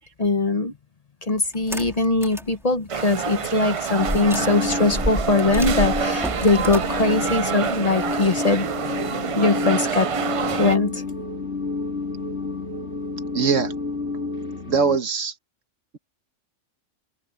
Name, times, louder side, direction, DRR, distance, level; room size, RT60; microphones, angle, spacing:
voice 1, 0.2-0.7 1.2-8.7 9.3-10.1 10.6-11.0, left 3 dB, 35° left, 0.9 m, -21 dB
sound 1, 1.5-2.5 3.0-3.1 4.0-8.3, equal, ahead, 2.0 m, -30 dB
sound 2, 2.9-10.8, right 7 dB, 55° right, 0.3 m, -27 dB
sound 3, 4.0-15.0, left 3 dB, 60° left, 4.2 m, -30 dB
voice 2, 13.3-13.7 14.7-15.3, right 5 dB, 85° right, 1.7 m, -22 dB
omnidirectional pair, 1.3 m